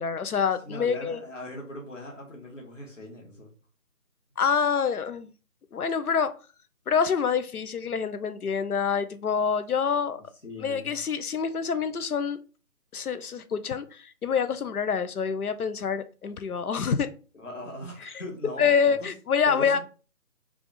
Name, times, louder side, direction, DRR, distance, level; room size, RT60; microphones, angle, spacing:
voice 1, 0.0-1.2 4.4-5.3 5.7-6.3 6.9-10.2 10.6-12.4 12.9-17.1 18.6-19.8, left 6 dB, 80° left, 0.6 m, -26 dB
voice 2, 0.6-3.5 9.8-11.0 17.3-19.1 19.4-19.8, left 1 dB, 55° left, 1.3 m, -40 dB
3.4 x 2.4 x 3.8 m
figure-of-eight pair, 155°, 45 cm